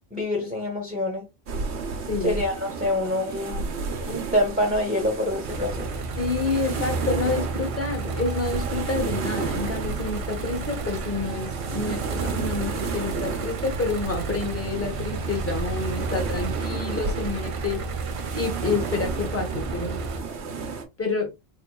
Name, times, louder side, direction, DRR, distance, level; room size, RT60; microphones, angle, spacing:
voice 1, 0.1-1.2 2.2-3.7 4.1-5.9, left 1 dB, 10° right, 0.9 m, -26 dB
sound 1, 1.5-20.8, right 4 dB, 75° right, 1.1 m, -33 dB
voice 2, 2.1-2.4 6.2-17.9 18.3-20.0 21.0-21.3, left 3 dB, 15° left, 1.0 m, -28 dB
sound 2, 5.4-20.2, right 4 dB, 60° right, 0.3 m, -32 dB
3.9 x 3.0 x 2.2 m
omnidirectional pair, 1.1 m